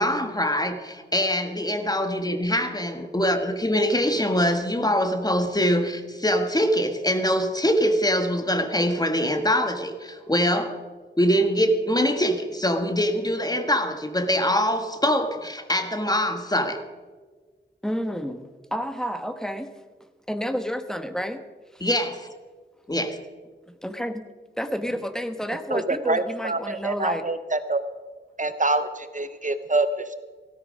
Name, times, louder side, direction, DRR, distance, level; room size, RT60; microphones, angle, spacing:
voice 1, 0.0-10.8 11.2-16.8 21.8-22.3 22.9-23.2, equal, 20° left, 7 dB, 1.5 m, -23 dB
voice 2, 17.8-19.7 20.3-21.4 21.7-21.8 23.8-24.3 24.6-27.2, equal, 5° left, 8 dB, 1.2 m, -30 dB
voice 3, 25.7-27.8 28.4-30.2, right 2 dB, 40° right, 11 dB, 0.8 m, -26 dB
17.0 x 13.5 x 5.3 m, 1.4 s
wide cardioid pair, 80°, 20 cm